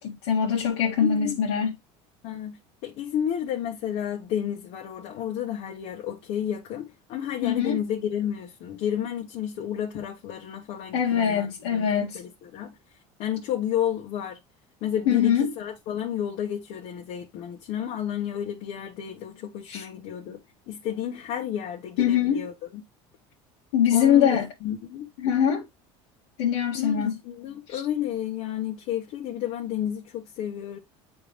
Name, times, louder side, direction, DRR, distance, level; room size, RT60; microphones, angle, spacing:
voice 1, 0.0-1.7 7.4-7.8 10.9-12.2 15.1-15.5 19.7-19.9 22.0-22.4 23.7-24.5 25.2-25.6 26.4-27.1 27.7-27.8, left 8 dB, 85° left, 1.7 m, -23 dB
voice 2, 1.0-1.4 2.2-11.9 12.1-12.7 13.2-14.4 14.8-20.4 20.7-22.8 23.9-25.1 26.7-30.8, left 10 dB, 60° left, 1.4 m, -31 dB
8.6 x 3.5 x 3.4 m
supercardioid pair, 125°, 13 cm